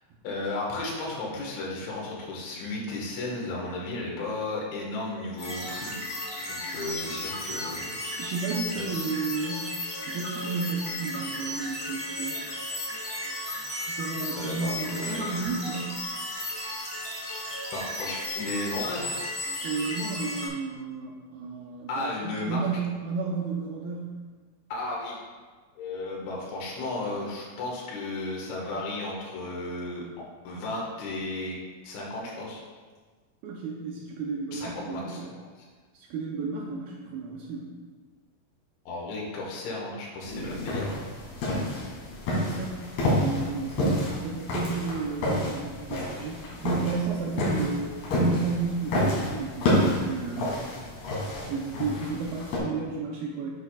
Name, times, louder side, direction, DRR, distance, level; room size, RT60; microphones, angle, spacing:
voice 1, 0.2-6.0 6.6-7.9 8.8-8.9 14.4-15.5 17.7-19.1 21.9-22.6 24.7-25.2 25.8-30.0 30.5-31.6 31.8-32.6 34.5-35.7 38.9-41.1 43.8-44.0, left 2 dB, 75° left, -3 dB, 4.0 m, -34 dB
sound 1, 5.4-20.5, left 1 dB, 30° left, 0.7 m, -34 dB
voice 2, 8.0-9.7 10.0-12.4 13.9-16.0 19.6-24.2 33.4-35.3 35.9-37.7 42.3-50.6 51.4-53.5, right 4 dB, 85° right, -2 dB, 2.1 m, -32 dB
sound 2, 40.2-52.6, left 1 dB, 60° left, 3.9 m, -29 dB
9.4 x 8.2 x 2.4 m, 1.4 s
omnidirectional pair, 5.4 m